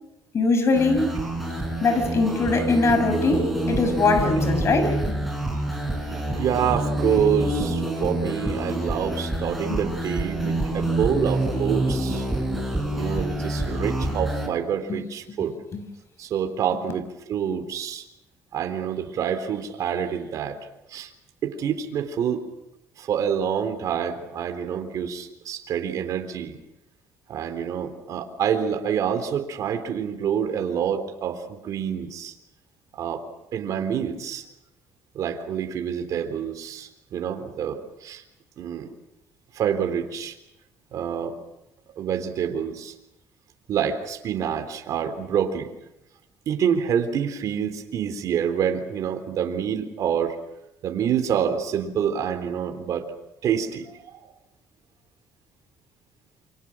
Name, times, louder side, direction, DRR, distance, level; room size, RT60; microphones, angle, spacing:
voice 1, 0.3-1.2 1.8-5.2 9.7-9.8 14.9-15.0 15.7-15.8, left 3 dB, 45° left, 6.1 m, -22 dB
sound 1, 0.8-14.5, right 1 dB, ahead, 7.3 m, -27 dB
voice 2, 6.1-12.3 13.0-15.6 16.2-18.0 18.5-20.6 20.9-21.1 21.4-22.4 23.0-26.6 27.3-32.3 32.9-33.2 33.5-34.4 35.1-38.2 38.6-38.9 39.5-40.4 40.9-41.3 42.0-42.9 43.7-45.7 46.5-50.4 50.8-53.1 53.4-54.3, right 8 dB, 60° right, 3.7 m, -27 dB
28.5 x 26.0 x 6.3 m
cardioid pair, 105°, 6 cm